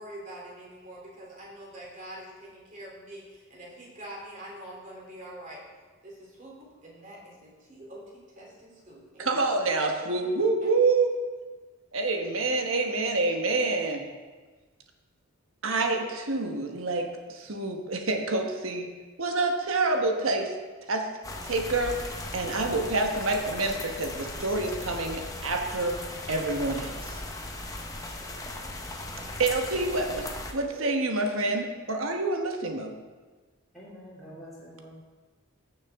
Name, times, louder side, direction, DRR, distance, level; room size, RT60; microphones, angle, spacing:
voice 1, 0.0-5.6 6.0-9.5, right 1 dB, 35° right, -4 dB, 3.0 m, -45 dB
voice 2, 9.2-11.1 11.9-14.0 15.6-18.9 19.2-20.5 20.9-21.1 21.4-25.9 26.3-27.2 29.4-32.9, right 3 dB, 80° right, 3 dB, 1.2 m, -27 dB
sound 1, 21.2-30.5, left 2 dB, 15° left, 0.8 m, -38 dB
voice 3, 33.7-34.9, equal, ahead, -12 dB, 2.7 m, -46 dB
15.5 x 6.7 x 3.6 m, 1.4 s
head